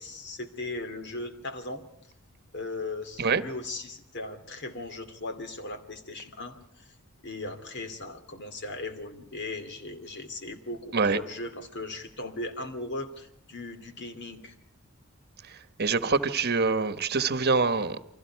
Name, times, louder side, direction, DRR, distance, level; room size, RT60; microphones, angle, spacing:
voice 1, 0.0-1.8 2.5-6.9 7.2-14.6, left 2 dB, 55° left, 2.7 m, -38 dB
voice 2, 15.8-18.0, right 4 dB, 50° right, 1.2 m, -25 dB
29.0 x 24.5 x 4.7 m
head